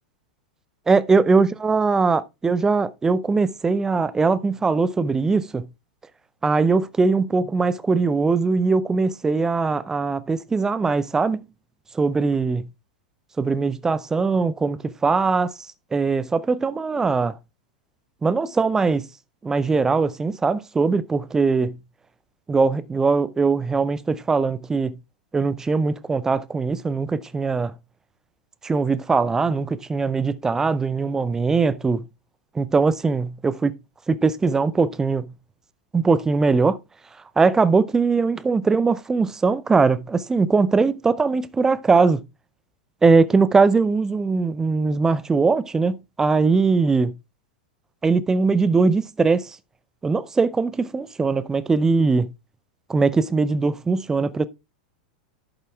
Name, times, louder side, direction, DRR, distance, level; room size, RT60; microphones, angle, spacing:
voice 1, 0.9-5.7 6.4-11.5 11.9-12.6 13.4-15.5 15.9-17.4 18.2-19.0 19.4-21.8 22.5-24.9 25.3-27.7 28.6-32.0 32.5-33.7 34.1-35.3 35.9-36.8 37.4-42.2 43.0-47.1 48.0-49.6 50.0-52.3 52.9-54.5, right 4 dB, 10° right, 0.5 m, -21 dB
11.0 x 7.9 x 2.3 m
figure-of-eight pair, 90°, 5 cm